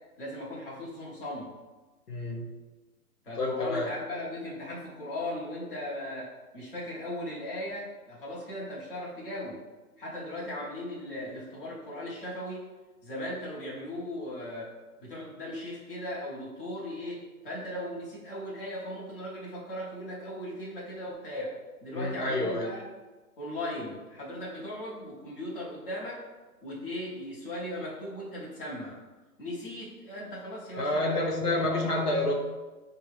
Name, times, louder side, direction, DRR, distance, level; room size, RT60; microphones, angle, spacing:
voice 1, 0.2-1.5 3.2-9.6 10.0-12.7 13.0-14.7 15.0-21.5 21.8-22.9 23.4-26.2 26.6-29.0 29.4-31.9, left 1 dB, 35° left, -6 dB, 1.0 m, -38 dB
voice 2, 2.1-2.4 3.4-3.9 21.9-22.7 30.8-32.3, left 2 dB, 80° left, -1 dB, 1.1 m, -28 dB
5.9 x 2.3 x 3.2 m, 1.2 s
hypercardioid pair, 165°, 46 cm